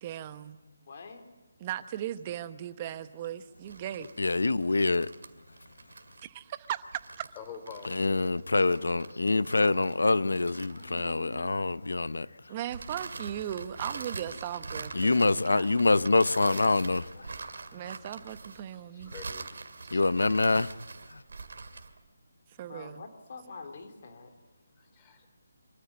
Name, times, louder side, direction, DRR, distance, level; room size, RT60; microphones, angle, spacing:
voice 1, 0.0-0.6 1.6-4.1 6.2-6.8 7.2-7.3 12.5-15.7 17.7-19.1 19.9-20.0 22.6-23.1, right 11 dB, 30° right, 1.0 m, -37 dB
voice 2, 0.8-1.2 9.3-10.5 10.8-11.5 22.6-24.3, left 4 dB, 50° left, 3.2 m, -46 dB
sound 1, 3.6-11.4 12.7-22.0, right 3 dB, 70° right, 2.1 m, -44 dB
voice 3, 4.2-5.1 7.9-12.3 14.9-17.3 19.9-20.7 21.1-21.2, left 3 dB, 85° left, 0.7 m, -25 dB
voice 4, 7.3-9.1 16.4-17.2 18.7-19.5 24.8-25.3, left 6 dB, 20° left, 3.2 m, -47 dB
25.0 x 14.0 x 9.6 m
figure-of-eight pair, 160°, 0 cm